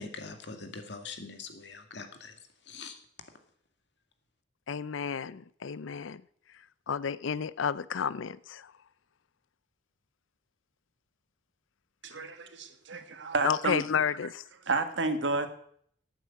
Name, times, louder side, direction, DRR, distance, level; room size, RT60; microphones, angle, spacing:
voice 1, 0.0-2.4 2.7-2.9, left 4 dB, 65° left, 6 dB, 1.9 m, -43 dB
voice 2, 4.7-6.2 6.9-8.7 13.4-14.4, left 7 dB, 85° left, 18 dB, 0.5 m, -31 dB
voice 3, 12.0-13.9 14.6-15.5, right 3 dB, 70° right, 8 dB, 1.7 m, -31 dB
11.0 x 9.3 x 8.2 m, 0.63 s
head